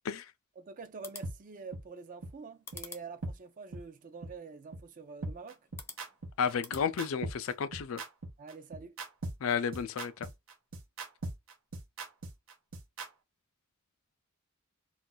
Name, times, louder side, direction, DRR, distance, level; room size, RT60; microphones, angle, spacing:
voice 1, 0.6-5.6 8.4-9.0, right 4 dB, 40° right, 0.4 m, -46 dB
sound 1, 0.9-6.9, left 4 dB, 10° left, 0.5 m, -52 dB
sound 2, 1.2-1.3 1.7-1.8 2.2-2.3 2.7-2.8 3.2-3.3 3.7-3.8 4.2-4.3 4.7-4.8 5.2-13.1, right 2 dB, 80° right, 0.8 m, -39 dB
voice 2, 6.4-8.0 9.4-10.3, left 6 dB, 75° left, 0.4 m, -32 dB
2.4 x 2.3 x 3.8 m
head